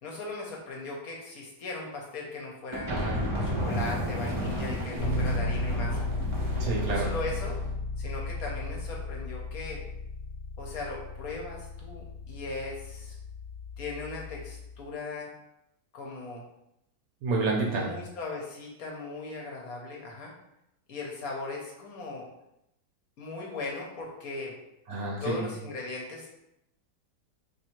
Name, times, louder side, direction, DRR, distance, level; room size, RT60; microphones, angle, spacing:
voice 1, 0.0-2.9 3.4-6.1 6.8-7.6 8.0-9.8 10.6-13.1 13.8-15.3 15.9-16.4 17.6-20.3 20.9-22.3 23.2-24.5 25.2-26.3, left 3 dB, 65° left, -1 dB, 1.1 m, -38 dB
sound 1, 2.7-7.7, equal, 35° right, 0.4 m, -33 dB
voice 2, 2.9-3.2 6.6-7.1 17.2-17.9 24.9-25.5, right 3 dB, 65° right, -2 dB, 1.1 m, -29 dB
Bass guitar, 5.0-14.8, left 2 dB, 40° left, 0.5 m, -34 dB
2.8 x 2.6 x 4.3 m, 0.83 s
omnidirectional pair, 1.8 m